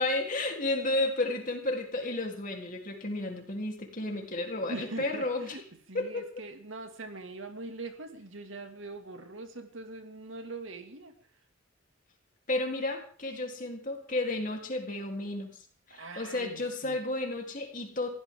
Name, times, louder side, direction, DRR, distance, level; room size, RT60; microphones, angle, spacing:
voice 1, 0.0-5.6 5.9-6.3 12.5-15.6 15.9-18.1, left 2 dB, 40° left, 2 dB, 3.5 m, -32 dB
voice 2, 4.5-11.2 15.9-17.0, right 2 dB, 70° right, 6 dB, 2.4 m, -42 dB
22.5 x 16.0 x 3.8 m, 0.43 s
head